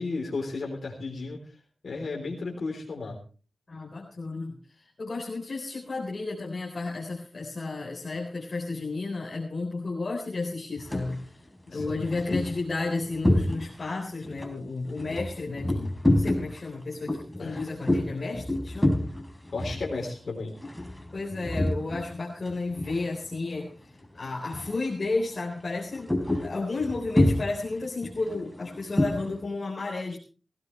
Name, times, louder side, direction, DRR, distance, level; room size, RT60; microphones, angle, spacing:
voice 1, 0.0-1.4 1.8-3.2 11.7-12.1 17.4-17.6 19.5-20.6, left 3 dB, 70° left, 0 dB, 3.8 m, -34 dB
voice 2, 3.7-11.2 11.7-19.0 21.1-26.1 26.4-30.2, left 3 dB, 55° left, -2 dB, 3.9 m, -32 dB
sound 1, 10.8-11.2 11.7-13.9 14.2-22.1 22.4-23.5 23.8-24.1 24.4-24.9 25.2-29.4, left 1 dB, 10° left, 4.5 m, -28 dB
18.5 x 16.0 x 3.3 m, 0.37 s
cardioid pair, 50°, 0 cm